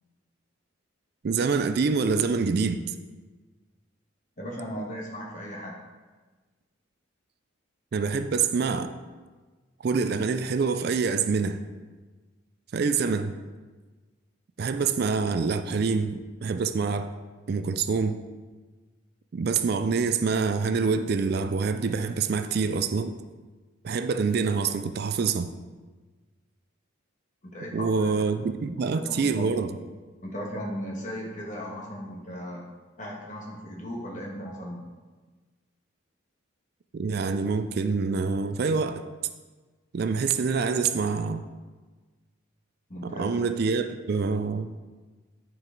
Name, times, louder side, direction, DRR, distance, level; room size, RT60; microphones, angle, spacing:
voice 1, 1.2-2.8 7.9-8.9 9.8-11.6 12.7-13.4 14.6-17.1 17.5-18.2 19.3-23.1 23.8-25.5 27.7-29.7 36.9-39.1 39.9-41.4 43.0-44.7, right 5 dB, 50° right, 9 dB, 0.3 m, -26 dB
voice 2, 4.4-5.8 14.8-14.9 27.4-28.3 28.8-29.5 30.2-32.6 33.0-34.8 42.9-43.4, equal, 40° left, -2 dB, 1.5 m, -37 dB
9.7 x 4.7 x 3.9 m, 1.3 s
head